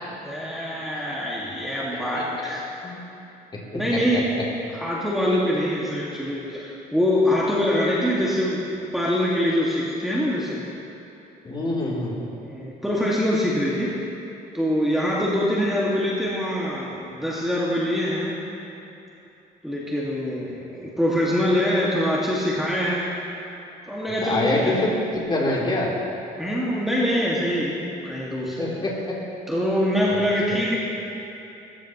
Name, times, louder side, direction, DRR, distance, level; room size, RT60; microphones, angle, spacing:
voice 1, 0.2-2.6 3.7-4.3 4.7-8.7 8.9-10.6 12.4-13.9 14.5-18.4 19.6-23.1 23.9-24.8 26.4-28.7 29.5-30.8, equal, ahead, -7 dB, 2.0 m, -24 dB
voice 2, 2.1-2.5 2.8-3.0 3.7-4.2 11.4-12.2 24.2-25.9 28.6-29.1 30.1-30.2, left 1 dB, 30° left, -5 dB, 3.4 m, -25 dB
21.5 x 14.0 x 3.1 m, 2.9 s
cardioid pair, 110°, 17 cm